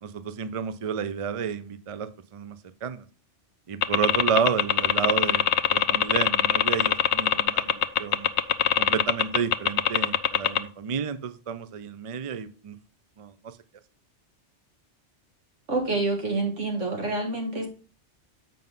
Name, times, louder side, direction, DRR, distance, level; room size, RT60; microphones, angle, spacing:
voice 1, 0.0-2.6 2.8-3.1 3.7-8.3 8.8-12.8 13.2-13.6, right 7 dB, 45° right, 12 dB, 0.4 m, -31 dB
sound 1, 3.8-10.6, left 10 dB, 70° left, 0.8 m, -21 dB
voice 2, 15.7-17.7, right 2 dB, 80° right, 2 dB, 2.2 m, -27 dB
7.5 x 5.4 x 3.8 m, 0.37 s
omnidirectional pair, 1.3 m